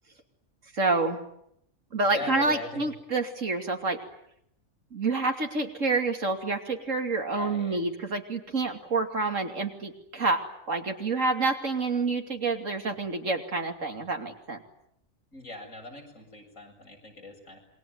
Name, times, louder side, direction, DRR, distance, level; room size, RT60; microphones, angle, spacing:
voice 1, 0.7-1.2 1.9-4.0 4.9-14.6, right 3 dB, 70° right, 5 dB, 3.2 m, -28 dB
voice 2, 2.1-2.9 7.4-7.8 15.3-17.6, left 2 dB, 80° left, 1 dB, 8.0 m, -40 dB
27.5 x 23.0 x 9.5 m, 0.74 s
omnidirectional pair, 1.4 m